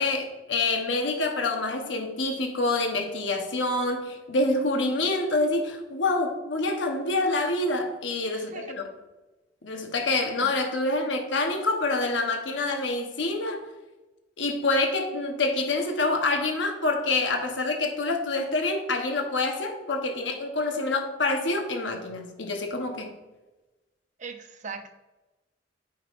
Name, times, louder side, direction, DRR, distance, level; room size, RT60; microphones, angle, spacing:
voice 1, 0.0-8.9 9.6-13.6 14.4-23.1, left 2 dB, 75° left, 4 dB, 1.0 m, -27 dB
voice 2, 8.3-8.7 24.2-24.9, right 5 dB, 40° right, 5 dB, 0.6 m, -40 dB
8.5 x 5.5 x 2.5 m, 1.1 s
head